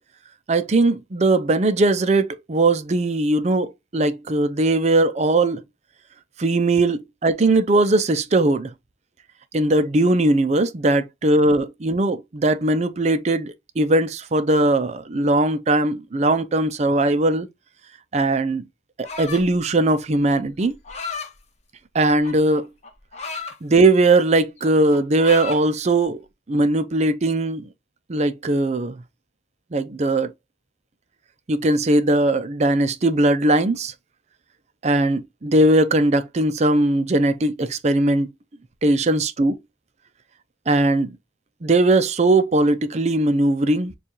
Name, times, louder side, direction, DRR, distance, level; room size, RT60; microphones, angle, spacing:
voice 1, 0.5-5.6 6.4-8.7 9.5-17.5 18.1-18.6 19.0-20.7 21.9-22.7 23.6-26.2 26.5-27.7 28.1-29.0 29.7-30.3 31.5-33.9 34.8-38.3 38.8-39.6 40.7-41.1 41.6-43.9, right 2 dB, 40° right, 0.5 m, -19 dB
sound 1, 19.0-19.6 20.6-21.3 22.2-23.6 24.0-24.3 24.6-25.6, left 4 dB, 40° left, 1.0 m, -33 dB
6.8 x 2.4 x 3.0 m
head